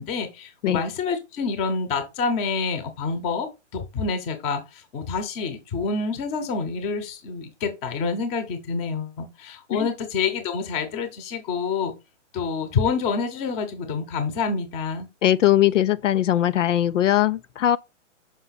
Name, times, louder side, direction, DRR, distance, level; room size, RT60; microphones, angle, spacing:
voice 1, 0.0-11.9 12.3-15.1, left 5 dB, 15° left, 0.9 m, -27 dB
voice 2, 15.2-17.8, left 12 dB, 80° left, 0.6 m, -20 dB
5.8 x 5.5 x 4.1 m
hypercardioid pair, 155°, 37 cm